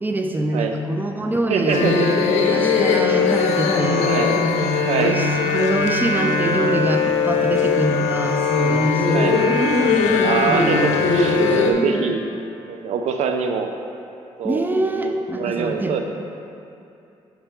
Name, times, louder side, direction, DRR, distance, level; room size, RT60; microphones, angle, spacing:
voice 1, 0.0-1.9 2.5-4.1 5.0-9.4 11.4-12.2 14.4-16.0, right 1 dB, 15° right, 4 dB, 0.6 m, -24 dB
voice 2, 1.5-2.2 4.1-4.4 4.9-5.2 9.1-9.4 10.2-12.2 12.7-13.7 14.4-14.6 15.0-16.0, right 6 dB, 75° right, 5 dB, 0.5 m, -24 dB
sound 1, 1.7-11.7, left 4 dB, 85° left, 0.6 m, -19 dB
6.1 x 5.5 x 3.5 m, 2.7 s
cardioid pair, 75°, 12 cm